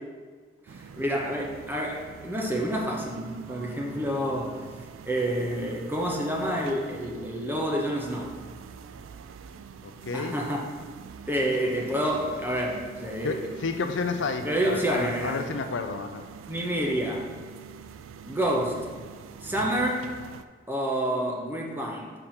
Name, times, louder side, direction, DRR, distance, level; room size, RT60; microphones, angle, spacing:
voice 1, 0.7-4.5 5.0-8.3 10.1-10.6 11.3-13.4 14.4-15.4 16.5-17.3 18.3-18.9 19.4-20.1 20.7-22.1, equal, 10° right, -1 dB, 0.7 m, -28 dB
sound 1, 0.7-20.4, right 6 dB, 90° right, 0.3 m, -44 dB
voice 2, 9.8-10.4 13.2-16.3, left 4 dB, 70° left, 7 dB, 0.5 m, -31 dB
5.1 x 4.4 x 5.8 m, 1.5 s
head